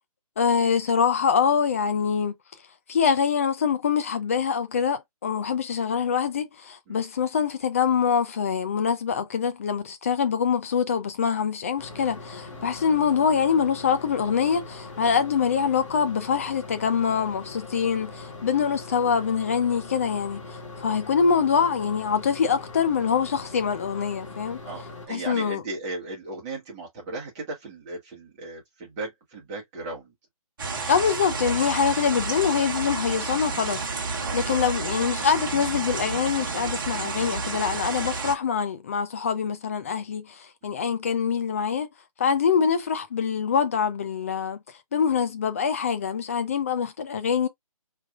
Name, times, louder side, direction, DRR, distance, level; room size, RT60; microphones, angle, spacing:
voice 1, 0.4-2.3 2.9-20.4 20.8-24.6 25.1-25.6 30.9-41.9 42.2-44.6 44.9-47.5, left 6 dB, 25° left, 0.5 m, -24 dB
sound 1, 11.8-25.1, left 3 dB, 55° left, 1.8 m, -41 dB
voice 2, 24.6-30.1 31.8-31.9 34.2-34.4 40.6-40.7, right 2 dB, 15° right, 1.4 m, -36 dB
sound 2, 30.6-38.3, right 4 dB, 35° right, 1.2 m, -30 dB
4.5 x 3.4 x 2.4 m
figure-of-eight pair, 160°, 19 cm